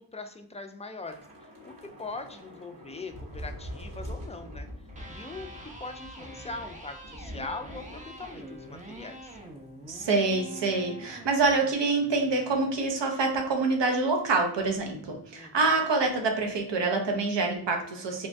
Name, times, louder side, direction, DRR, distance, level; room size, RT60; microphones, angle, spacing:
voice 1, 0.0-4.7 5.1-5.5 5.8-9.4 15.3-15.8, left 3 dB, 15° left, 6 dB, 0.3 m, -41 dB
Thunder / Rain, 1.1-9.6 9.9-10.1 10.5-10.7, equal, 50° right, 1.1 m, -44 dB
Electric guitar, 4.9-12.9, right 1 dB, 15° right, 0.6 m, -46 dB
voice 2, 9.9-18.3, right 3 dB, 75° right, 3 dB, 0.8 m, -26 dB
3.1 x 2.1 x 2.6 m, 0.70 s
cardioid pair, 45°, 43 cm